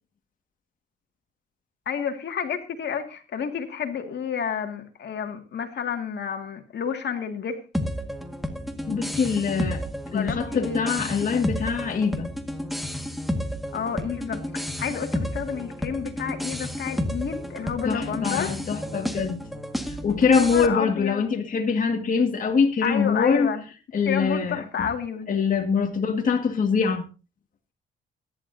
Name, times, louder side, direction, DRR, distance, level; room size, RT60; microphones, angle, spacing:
voice 1, 1.9-7.6 10.1-10.8 13.7-18.5 20.2-21.3 22.8-23.6 24.1-25.3, left 7 dB, 60° left, 2.2 m, -30 dB
sound 1, 7.7-20.7, equal, ahead, 1.8 m, -31 dB
voice 2, 8.9-9.8 10.1-12.3 17.8-19.4 19.9-23.5 23.9-24.9 25.3-27.0, left 5 dB, 40° left, 1.9 m, -24 dB
22.5 x 11.0 x 2.7 m
cardioid pair, 90°, 20 cm